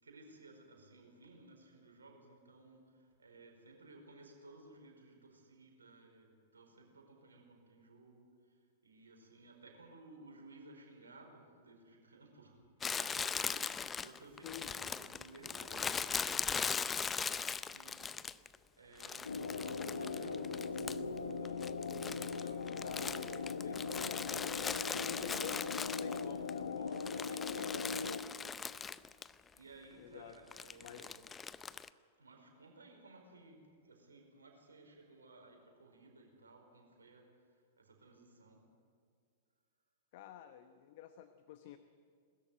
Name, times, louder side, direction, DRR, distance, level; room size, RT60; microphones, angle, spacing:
voice 1, 0.0-12.6 12.9-23.1 23.6-25.6 26.0-28.3 28.9-29.1 29.5-31.2 32.2-38.6, right 2 dB, 75° right, 2 dB, 4.9 m, -58 dB
Crumpling crinkling, 12.8-18.6 19.0-21.2 21.5-26.5 26.9-29.3 29.6-29.7 30.5-31.9, left 6 dB, 20° left, 0.5 m, -40 dB
voice 2, 14.4-14.7 22.8-23.8 24.1-24.6 25.0-26.7 30.0-30.3 30.8-31.1 40.1-41.8, left 11 dB, 50° left, 10 dB, 0.9 m, -51 dB
sound 1, 19.2-28.2, left 4 dB, 80° left, 1.1 m, -40 dB
21.0 x 13.5 x 9.2 m, 2.1 s
figure-of-eight pair, 100°, 0 cm